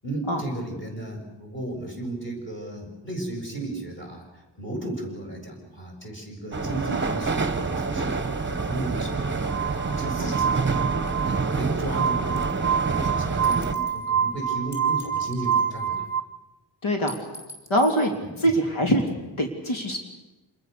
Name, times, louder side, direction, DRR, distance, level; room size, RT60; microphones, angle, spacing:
voice 1, 0.0-12.6 12.9-16.0 18.1-18.3, right 1 dB, 25° left, 0 dB, 7.7 m, -35 dB
sound 1, 6.5-13.7, right 4 dB, 25° right, 1.3 m, -27 dB
Glass, 9.5-16.2, right 7 dB, 40° right, 1.0 m, -27 dB
sound 2, 12.4-12.7 13.4-14.1 14.7-16.0 17.1-18.1, equal, 5° left, 5.6 m, -44 dB
voice 2, 16.8-17.1 17.7-18.1 18.4-19.0 19.4-20.0, equal, 90° left, 2 dB, 3.4 m, -23 dB
27.5 x 21.5 x 6.9 m, 1.1 s
wide cardioid pair, 130°, 47 cm